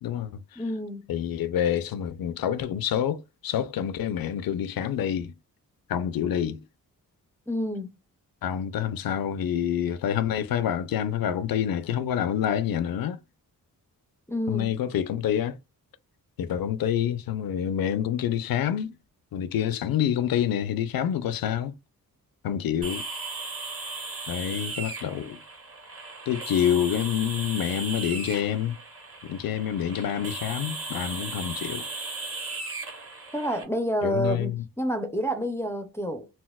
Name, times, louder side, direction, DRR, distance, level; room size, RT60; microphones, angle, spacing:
voice 1, 0.0-0.6 1.1-5.3 5.9-6.6 8.4-13.2 14.5-15.6 16.4-18.9 19.3-21.7 22.4-23.1 24.3-25.4 26.3-28.8 29.2-31.9 34.0-34.6, left 9 dB, 75° left, 0.5 m, -27 dB
voice 2, 0.6-1.1 7.5-7.9 14.3-14.7 33.3-36.3, equal, 10° left, 0.4 m, -29 dB
sound 1, 22.8-33.6, right 3 dB, 40° right, 0.9 m, -37 dB
4.1 x 2.0 x 2.2 m
wide cardioid pair, 125°, 35 cm